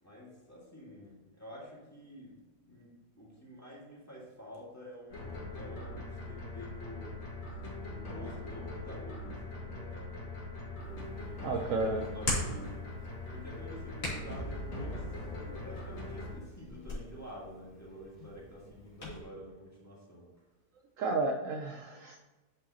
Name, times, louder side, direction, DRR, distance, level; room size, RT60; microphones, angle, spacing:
voice 1, 0.0-7.2 7.8-10.3 10.8-12.8 13.3-20.3, equal, 10° left, -6 dB, 1.9 m, -49 dB
sound 1, 5.1-16.3, left 2 dB, 85° left, 2.4 m, -41 dB
Hands, 10.8-19.2, left 1 dB, 35° left, 2.3 m, -42 dB
voice 2, 11.4-12.0 21.0-22.2, right 3 dB, 65° right, 3 dB, 0.9 m, -32 dB
9.5 x 5.4 x 2.9 m, 1.1 s
omnidirectional pair, 1.8 m